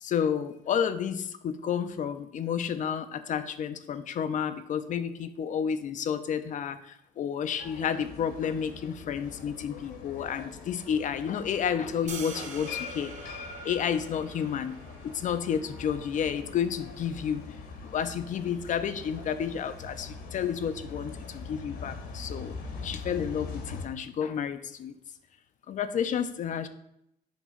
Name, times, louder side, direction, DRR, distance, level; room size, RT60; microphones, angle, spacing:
voice 1, 0.0-13.1 13.6-14.8 15.0-17.4 17.9-22.6 22.8-25.0 25.7-26.7, left 8 dB, 50° left, 11 dB, 0.6 m, -31 dB
sound 1, 7.6-23.9, left 4 dB, 70° left, 1.3 m, -43 dB
sound 2, 12.1-18.2, right 4 dB, 45° right, 1.3 m, -47 dB
7.2 x 3.0 x 5.7 m, 0.78 s
cardioid pair, 110°, 17 cm